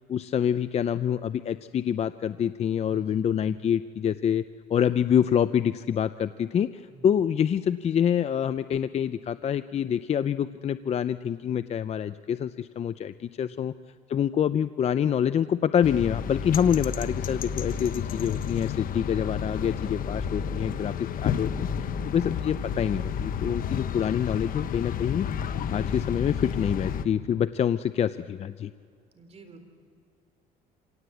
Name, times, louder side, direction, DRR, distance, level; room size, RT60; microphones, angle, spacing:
voice 1, 0.1-4.4 4.7-13.7 14.1-25.3 25.7-28.7, left 8 dB, 40° left, 13 dB, 0.5 m, -26 dB
voice 2, 2.9-3.2 6.9-7.1 13.4-13.6 22.0-22.5 29.1-29.7, right 3 dB, 40° right, 7 dB, 3.7 m, -50 dB
sound 1, 15.8-27.0, left 7 dB, 55° left, 1.0 m, -31 dB
26.5 x 18.0 x 8.3 m, 2.4 s
cardioid pair, 110°, 17 cm